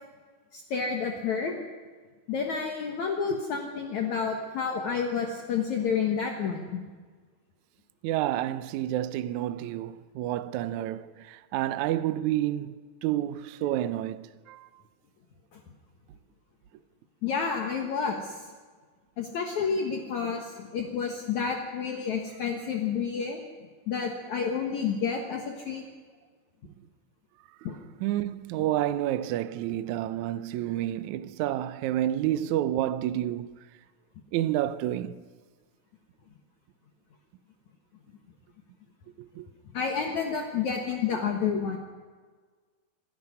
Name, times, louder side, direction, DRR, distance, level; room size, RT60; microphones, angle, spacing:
voice 1, 0.5-1.5 2.3-6.8 10.8-10.9 17.2-18.4 19.2-23.4 23.9-25.8 27.6-27.8 39.7-41.8, left 6 dB, 60° left, 2.5 m, -30 dB
voice 2, 8.0-14.6 28.0-33.5 34.3-35.2 39.2-39.5, right 13 dB, 85° right, 1.7 m, -29 dB
26.5 x 11.5 x 9.6 m
omnidirectional pair, 4.3 m